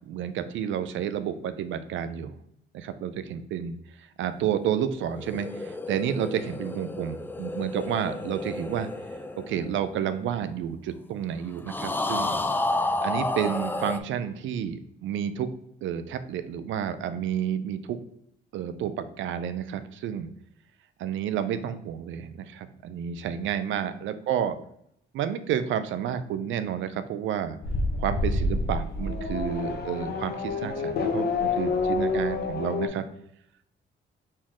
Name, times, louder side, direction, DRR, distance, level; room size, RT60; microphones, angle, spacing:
voice 1, 0.1-2.3 2.7-8.9 9.4-12.4 13.0-15.5 15.8-18.0 18.5-20.3 21.0-24.6 25.1-27.6 28.0-33.0, right 9 dB, 75° right, 11 dB, 0.4 m, -30 dB
sound 1, 5.0-10.6 11.7-14.0, left 2 dB, 10° left, 0.3 m, -31 dB
Race car auto racing / Accelerating revving vroom, 27.6-32.9, left 3 dB, 55° left, 0.8 m, -28 dB
4.3 x 3.7 x 3.0 m, 0.73 s
cardioid pair, 90°, 20 cm